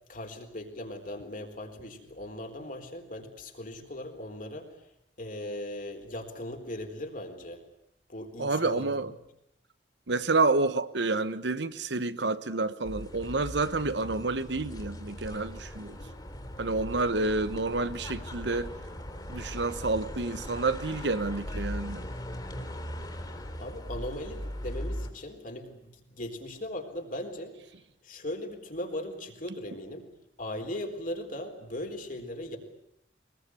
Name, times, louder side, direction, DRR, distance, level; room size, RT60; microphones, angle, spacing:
voice 1, 0.1-4.7 5.2-7.6 8.1-8.9 23.3-27.6 28.0-30.1 30.4-32.6, left 1 dB, 50° left, 4.1 m, -38 dB
voice 2, 8.4-9.1 10.1-16.0 16.6-18.7 19.3-22.0, right 3 dB, 75° right, 1.2 m, -29 dB
sound 1, 12.8-25.1, equal, 25° left, 3.5 m, -39 dB
23.0 x 21.0 x 9.8 m
head